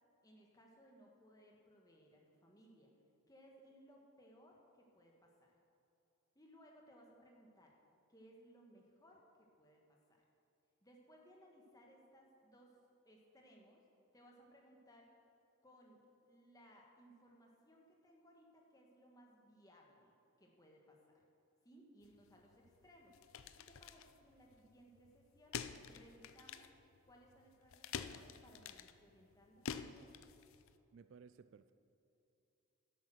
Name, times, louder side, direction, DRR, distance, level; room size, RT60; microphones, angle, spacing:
voice 1, 0.2-2.9 3.3-5.5 6.3-7.8 8.1-10.2 10.8-12.8 13.0-13.8 14.1-15.1 15.6-21.2 21.6-26.7 27.0-30.0, equal, 15° left, 0 dB, 1.5 m, -64 dB
sound 1, 22.0-30.8, left 7 dB, 65° left, 0.5 m, -49 dB
voice 2, 30.9-31.7, right 5 dB, 55° right, 12 dB, 0.3 m, -59 dB
11.5 x 8.3 x 6.3 m, 2.8 s
head